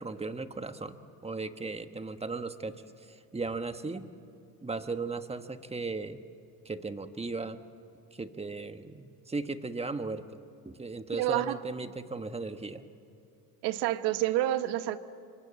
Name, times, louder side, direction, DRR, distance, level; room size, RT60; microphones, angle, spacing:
voice 1, 0.0-2.7 3.1-4.1 4.6-6.2 6.6-7.6 8.1-10.4 10.6-12.8, right 3 dB, 15° right, 9 dB, 1.3 m, -36 dB
voice 2, 11.2-11.6 13.6-15.0, right 14 dB, 80° right, 11 dB, 1.2 m, -28 dB
27.5 x 23.5 x 8.4 m, 2.4 s
supercardioid pair, 95°, 40 cm